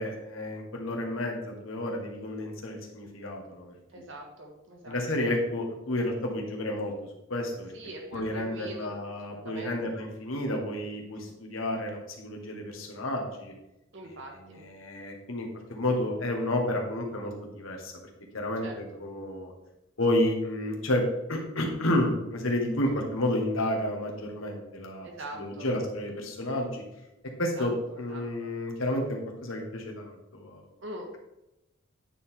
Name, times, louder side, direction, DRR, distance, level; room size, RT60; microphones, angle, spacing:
voice 1, 0.0-3.7 4.8-6.9 7.3-7.7 8.1-13.5 14.5-17.9 18.3-18.6 19.0-19.5 20.0-21.0 21.3-25.1 25.3-26.8 27.4-27.7 28.0-30.6, left 1 dB, 75° left, 1 dB, 1.4 m, -31 dB
voice 2, 3.9-5.3 7.7-8.9 9.3-9.8 10.5-10.6 11.1-11.3 13.9-14.6 18.6-19.0 22.8-23.0 25.0-25.7 27.5-28.5 30.8-31.1, right 1 dB, 60° right, 1 dB, 1.6 m, -43 dB
9.0 x 4.6 x 3.7 m, 0.91 s
head